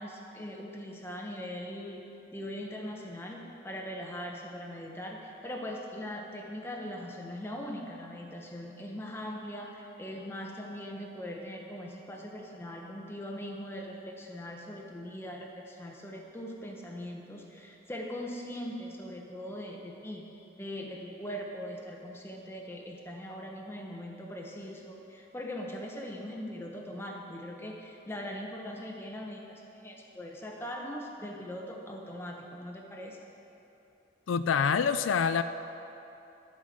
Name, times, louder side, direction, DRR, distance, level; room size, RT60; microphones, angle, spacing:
voice 1, 0.0-2.0 2.3-20.2 20.6-33.2, equal, 10° left, 0 dB, 1.1 m, -41 dB
voice 2, 34.3-35.4, left 6 dB, 90° left, 11 dB, 0.4 m, -26 dB
13.5 x 5.6 x 7.7 m, 2.9 s
head